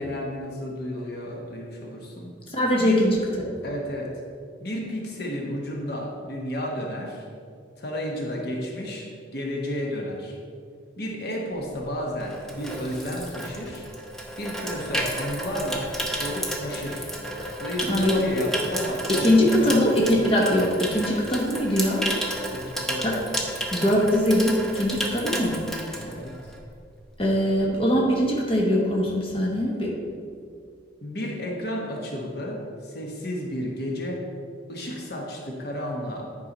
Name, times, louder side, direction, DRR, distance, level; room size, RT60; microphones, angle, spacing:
voice 1, 0.0-2.3 2.8-3.1 3.6-4.1 4.6-7.3 7.8-10.4 11.0-13.9 14.4-15.9 16.2-17.1 17.6-19.8 22.5-23.2 26.0-26.3 31.0-34.3 34.7-36.3, equal, 50° left, -1 dB, 1.1 m, -32 dB
voice 2, 2.5-3.6 17.9-18.5 19.1-22.1 23.0-23.1 23.7-25.6 27.2-29.9, equal, 30° left, -2 dB, 1.2 m, -22 dB
Water tap faucet / Sink (filling or washing), 11.7-26.7 27.0-27.3, right 1 dB, ahead, 0.7 m, -32 dB
10.0 x 4.6 x 5.4 m, 2.2 s
head